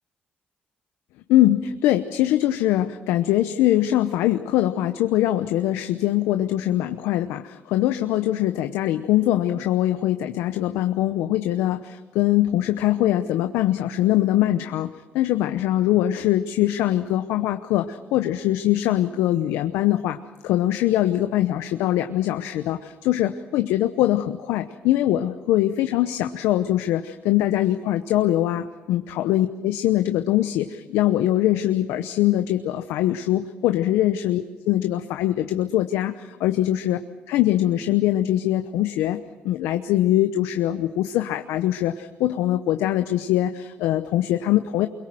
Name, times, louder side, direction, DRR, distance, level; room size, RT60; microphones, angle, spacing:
voice 1, 1.3-37.0 37.3-44.9, left 13 dB, 90° left, 9 dB, 0.9 m, -22 dB
24.5 x 22.5 x 7.7 m, 1.3 s
cardioid pair, 90°, 4 cm